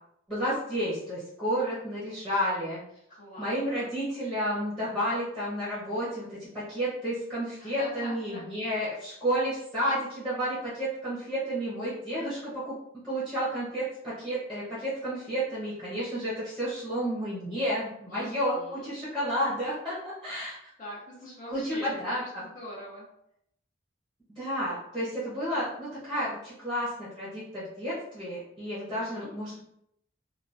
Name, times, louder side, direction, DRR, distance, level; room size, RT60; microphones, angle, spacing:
voice 1, 0.3-2.8 3.4-12.7 13.0-20.6 21.5-22.4 24.4-29.6, equal, 5° left, -10 dB, 1.0 m, -31 dB
voice 2, 3.1-3.9 7.6-8.4 18.1-18.9 20.8-23.1 28.9-29.3, equal, 40° left, -7 dB, 1.2 m, -43 dB
3.0 x 2.3 x 2.6 m, 0.74 s
head